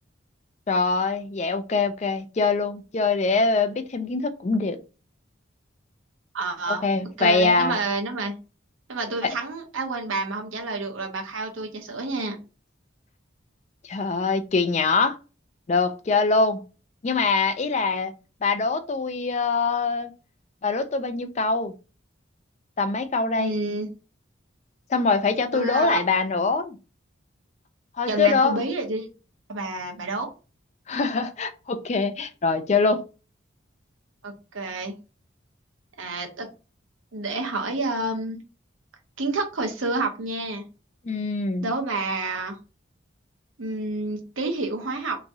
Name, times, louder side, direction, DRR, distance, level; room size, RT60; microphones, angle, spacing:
voice 1, 0.7-4.8 6.7-7.8 13.9-15.2 15.7-16.6 17.0-18.1 18.4-20.1 20.6-21.7 22.8-23.5 24.9-26.8 28.0-28.6 30.9-33.0 41.1-41.7, left 4 dB, 35° left, 0.4 m, -23 dB
voice 2, 6.3-6.8 7.2-8.3 8.9-12.4 23.4-23.9 25.5-26.0 28.1-29.1 29.5-30.3 34.2-34.9 36.0-36.5 37.1-38.4 39.2-40.6 41.6-42.6 43.6-45.2, right 2 dB, 90° right, 0.9 m, -29 dB
3.4 x 3.0 x 2.7 m
head